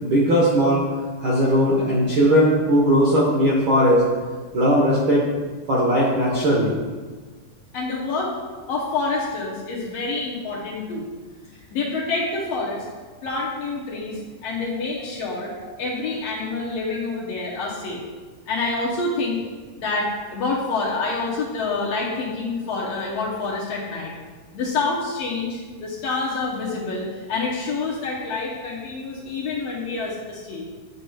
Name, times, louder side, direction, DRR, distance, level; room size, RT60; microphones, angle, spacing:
voice 1, 0.0-0.8 1.2-4.0 4.5-5.2 5.7-6.8, equal, 85° right, -5 dB, 1.1 m, -18 dB
voice 2, 7.7-8.3 8.7-11.1 11.7-12.9 13.2-15.5 15.8-18.0 18.5-19.4 19.8-24.1 24.5-30.7, left 3 dB, 75° left, -4 dB, 1.4 m, -27 dB
8.7 x 6.9 x 2.3 m, 1.4 s
omnidirectional pair, 4.0 m